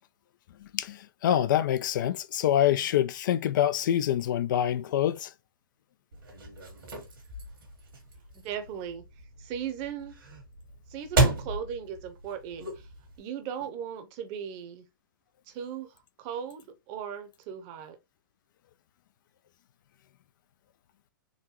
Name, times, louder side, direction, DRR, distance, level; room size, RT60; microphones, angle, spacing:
voice 1, 0.7-5.3, left 11 dB, 65° left, 0.4 m, -26 dB
sound 1, 6.1-13.2, right 2 dB, 75° right, 1.4 m, -33 dB
voice 2, 8.3-9.0 9.4-10.2 10.9-12.9 13.2-14.9 15.5-18.0, right 8 dB, 40° right, 0.8 m, -37 dB
3.9 x 2.1 x 2.9 m
hypercardioid pair, 115°, 11 cm